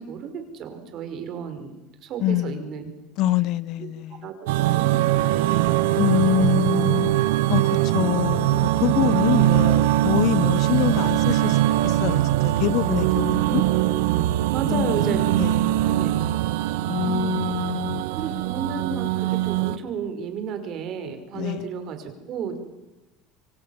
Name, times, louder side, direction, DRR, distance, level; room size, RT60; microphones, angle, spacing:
voice 1, 0.0-2.9 3.8-3.9 4.2-5.8 14.5-15.3 15.8-16.1 17.0-17.4 18.1-22.6, right 7 dB, 45° right, 5.4 m, -33 dB
voice 2, 2.2-2.6 3.2-4.3 6.0-7.1 7.5-12.2 12.6-13.6 14.7-15.8 16.9-18.0 21.3-21.7, left 12 dB, 55° left, 0.8 m, -25 dB
sound 1, 4.5-19.8, right 14 dB, 90° right, 1.2 m, -22 dB
28.0 x 24.0 x 7.4 m
cardioid pair, 145°, 0 cm